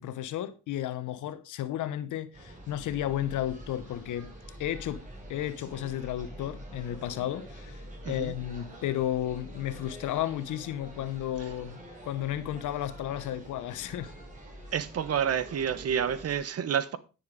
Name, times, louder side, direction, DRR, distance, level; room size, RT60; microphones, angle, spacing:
voice 1, 0.0-4.3 4.6-5.0 5.3-7.8 8.1-14.1, left 12 dB, 80° left, 1.1 m, -33 dB
sound 1, 2.3-16.4, right 1 dB, 25° right, 5.0 m, -46 dB
voice 2, 14.7-17.0, right 8 dB, 55° right, 1.1 m, -29 dB
9.7 x 7.0 x 4.8 m
cardioid pair, 90°, 30 cm